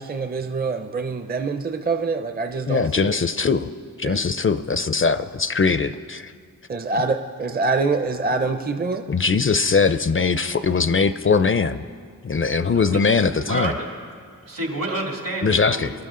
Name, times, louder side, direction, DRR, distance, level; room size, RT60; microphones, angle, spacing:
voice 1, 0.0-3.2 4.0-4.2 6.7-9.1, right 4 dB, 25° right, 6 dB, 0.6 m, -25 dB
voice 2, 2.7-3.7 4.0-6.3 9.1-11.8 12.2-13.7 15.4-16.0, left 5 dB, 40° left, 12 dB, 0.4 m, -21 dB
voice 3, 12.7-13.0 13.5-13.9 14.4-16.1, right 2 dB, 75° right, 0 dB, 2.5 m, -29 dB
24.0 x 12.0 x 3.8 m, 2.1 s
wide cardioid pair, 85°, 34 cm